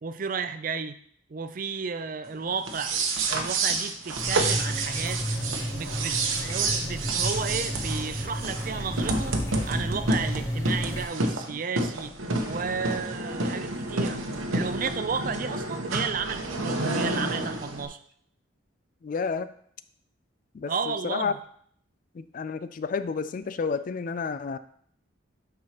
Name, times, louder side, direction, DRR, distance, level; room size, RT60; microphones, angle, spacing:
voice 1, 0.0-1.0 1.3-2.9 3.3-5.2 5.7-9.4 9.6-12.1 12.4-14.2 14.5-18.0 20.7-21.4, right 5 dB, 40° right, 11 dB, 0.4 m, -33 dB
tcr soundscape Hcfr-florine-anouck, 2.6-17.8, right 2 dB, 85° right, 1.0 m, -29 dB
sound 1, 4.2-11.1, equal, 15° left, 0.8 m, -32 dB
voice 2, 19.0-19.5 20.5-21.3 22.1-24.6, left 5 dB, 40° left, 12 dB, 0.3 m, -30 dB
12.0 x 4.7 x 2.9 m, 0.63 s
head